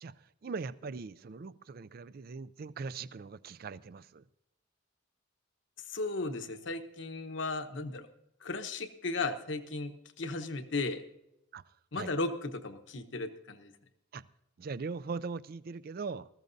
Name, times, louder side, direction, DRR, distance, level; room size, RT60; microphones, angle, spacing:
voice 1, 0.0-4.2 11.5-12.1 14.1-14.3 14.6-16.3, right 4 dB, 50° right, 17 dB, 0.4 m, -41 dB
voice 2, 5.9-8.1 8.4-11.0 11.9-13.7, left 3 dB, 65° left, 8 dB, 1.0 m, -35 dB
20.0 x 14.5 x 2.7 m, 0.85 s
head